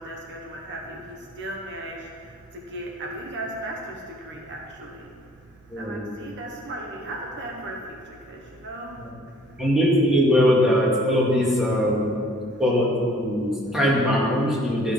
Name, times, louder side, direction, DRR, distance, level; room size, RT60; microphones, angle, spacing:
voice 1, 0.0-9.0 9.3-9.6, right 1 dB, 55° right, 0 dB, 1.1 m, -37 dB
voice 2, 5.7-6.0 9.0-9.1 9.6-12.1 12.6-14.9, equal, ahead, -6 dB, 2.0 m, -21 dB
13.5 x 5.4 x 5.6 m, 2.3 s
head